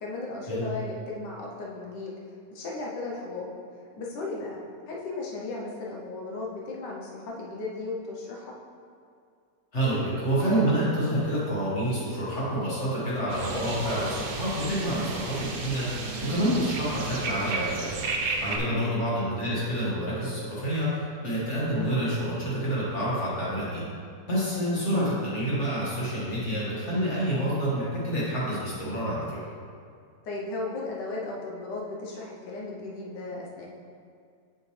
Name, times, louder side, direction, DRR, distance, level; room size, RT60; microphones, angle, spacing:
voice 1, 0.0-2.1 2.5-3.5 4.0-8.5 18.4-18.7 24.4-25.1 30.2-33.7, left 3 dB, 80° left, -2 dB, 1.5 m, -36 dB
voice 2, 9.7-17.9 18.4-23.8 24.3-29.2, right 1 dB, 45° left, -8 dB, 2.0 m, -28 dB
sound 1, 13.3-18.6, right 3 dB, 85° right, 0.4 m, -33 dB
6.4 x 6.4 x 3.3 m, 2.3 s
omnidirectional pair, 1.8 m